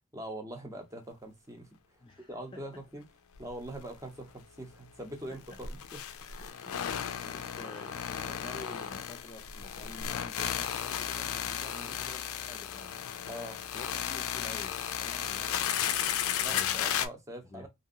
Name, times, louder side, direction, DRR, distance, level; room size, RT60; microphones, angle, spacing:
voice 1, 0.1-1.8 2.3-3.0 3.4-6.0 11.7-11.9 13.3-13.6 16.4-17.7, right 1 dB, 15° right, 0.7 m, -43 dB
voice 2, 2.0-2.8 5.3-5.6 6.2-13.0 13.7-16.0 16.2-16.8 17.4-17.7, left 2 dB, 25° left, 0.4 m, -50 dB
sound 1, 3.3-3.5 3.8-3.9 5.4-17.1, left 9 dB, 85° left, 0.4 m, -34 dB
2.8 x 2.6 x 2.5 m
head